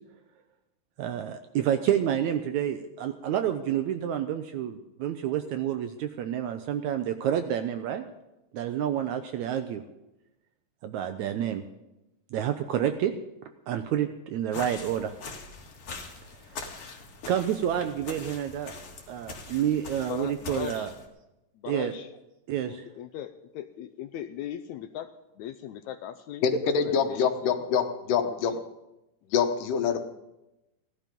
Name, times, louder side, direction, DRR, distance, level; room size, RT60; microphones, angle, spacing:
voice 1, 1.0-8.0 8.5-9.8 10.8-11.6 12.3-13.1 13.7-15.1 17.3-18.7 19.1-20.9 21.7-21.9 22.5-22.9, right 10 dB, 75° right, 8 dB, 1.8 m, -29 dB
sound 1, 14.5-21.1, left 4 dB, 50° left, 2.3 m, -42 dB
voice 2, 20.1-20.9 21.6-22.1 22.7-25.1 25.4-26.5 26.8-27.6 28.2-28.6, left 10 dB, 90° left, 7 dB, 1.6 m, -38 dB
voice 3, 26.4-28.5 29.3-30.0, left 6 dB, 75° left, 7 dB, 2.6 m, -25 dB
17.0 x 12.0 x 5.3 m, 0.94 s
omnidirectional pair, 4.0 m